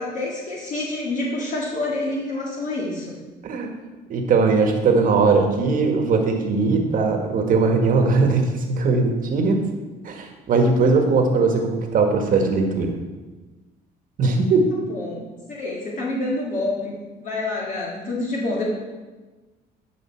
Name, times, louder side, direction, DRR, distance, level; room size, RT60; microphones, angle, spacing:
voice 1, 0.0-3.2 14.9-18.7, left 2 dB, 50° left, -4 dB, 1.8 m, -27 dB
voice 2, 4.1-9.6 10.0-12.9 14.2-14.7, right 4 dB, 55° right, 3 dB, 1.6 m, -19 dB
12.0 x 5.3 x 4.5 m, 1.2 s
cardioid pair, 110°, 17 cm